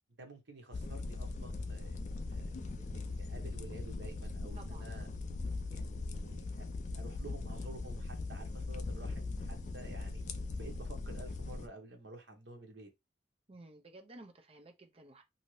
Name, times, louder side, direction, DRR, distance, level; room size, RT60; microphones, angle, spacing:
voice 1, 0.1-5.1 5.7-6.7 6.9-10.2 10.6-12.9, right 2 dB, 70° right, 0.9 m, -51 dB
sound 1, 0.7-11.7, left 3 dB, 40° left, 0.3 m, -40 dB
voice 2, 4.6-5.0 13.5-15.2, right 2 dB, 30° right, 0.6 m, -54 dB
2.7 x 2.7 x 3.1 m
head